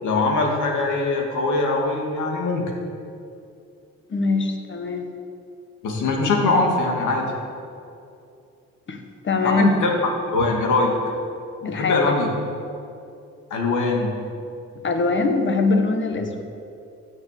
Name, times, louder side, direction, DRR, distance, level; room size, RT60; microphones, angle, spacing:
voice 1, 0.0-2.6 5.8-7.3 9.6-9.9 10.3-10.9 11.6-12.3 13.5-14.1, left 3 dB, 80° left, 0 dB, 2.5 m, -22 dB
voice 2, 4.1-5.0 8.9-9.0 9.2-9.7 11.6-12.1 14.8-16.4, left 3 dB, 40° left, 5 dB, 1.6 m, -22 dB
15.0 x 7.0 x 6.8 m, 2.5 s
cardioid pair, 90°, 30 cm